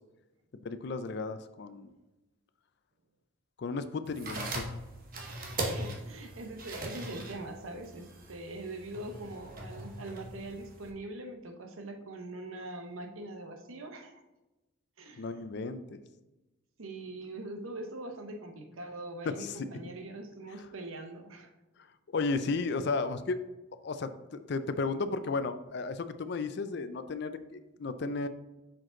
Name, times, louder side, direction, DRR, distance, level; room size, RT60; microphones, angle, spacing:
voice 1, 0.6-1.9 3.6-4.7 15.2-16.0 19.3-19.7 22.1-23.4 23.8-28.3, left 3 dB, 55° left, 11 dB, 0.4 m, -34 dB
sound 1, 4.1-10.9, right 1 dB, 45° right, 1.0 m, -40 dB
voice 2, 5.6-14.2 15.0-15.3 16.8-21.5, right 2 dB, 80° right, 5 dB, 0.9 m, -42 dB
6.1 x 5.0 x 3.8 m, 1.0 s
head